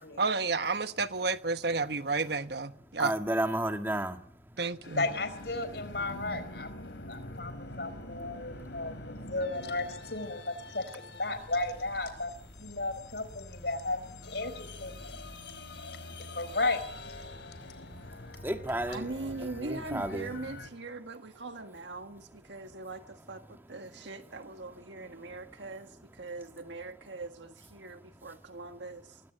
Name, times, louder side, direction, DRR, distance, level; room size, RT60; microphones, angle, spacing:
voice 1, 0.2-3.1 4.6-5.1, right 4 dB, 65° right, 1.2 m, -30 dB
voice 2, 3.0-4.2 6.1-6.4 18.4-19.0 19.6-20.3, right 1 dB, 10° right, 1.6 m, -32 dB
sound 1, 4.8-20.7, left 2 dB, 90° left, 2.9 m, -45 dB
voice 3, 4.9-6.7 7.1-12.3 12.6-14.0 14.3-15.0 16.3-16.8, left 2 dB, 65° left, 4.4 m, -34 dB
voice 4, 18.9-29.2, right 3 dB, 85° right, 1.7 m, -41 dB
25.0 x 19.5 x 9.1 m
head